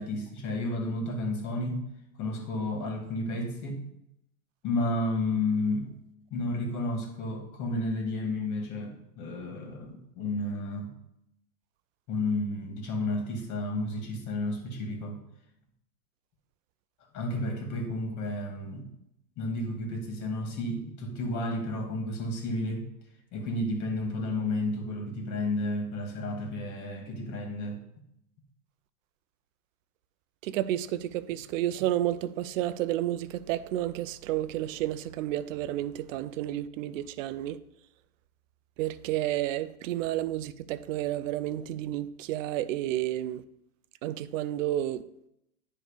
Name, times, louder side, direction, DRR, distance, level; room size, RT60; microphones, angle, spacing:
voice 1, 0.0-1.8 2.2-3.8 4.6-5.9 6.3-10.9 12.1-15.2 17.1-18.9 19.4-22.9 23.3-27.8, left 1 dB, 40° left, 2.1 m, -32 dB
voice 2, 30.4-37.6 38.8-43.4 44.0-45.0, right 13 dB, 60° right, 0.6 m, -31 dB
9.7 x 3.3 x 5.1 m
hypercardioid pair, 115°, 44 cm